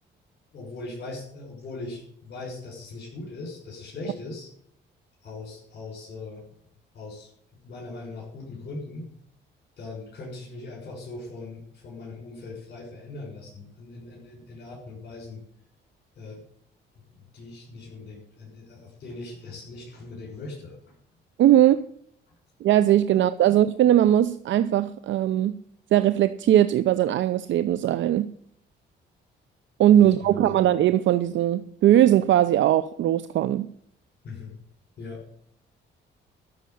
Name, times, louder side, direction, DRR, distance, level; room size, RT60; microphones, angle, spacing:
voice 1, 0.5-4.5 5.2-6.4 6.9-7.3 7.6-9.1 9.8-15.4 16.2-16.4 17.1-20.8 30.0-30.6 34.2-34.5 35.0-35.2, left 3 dB, 55° left, 6.2 m, -40 dB
voice 2, 21.4-21.9 22.6-25.6 25.9-28.3 29.8-33.7, right 12 dB, 70° right, 0.6 m, -20 dB
12.5 x 6.7 x 9.3 m
cardioid pair, 90°, 20 cm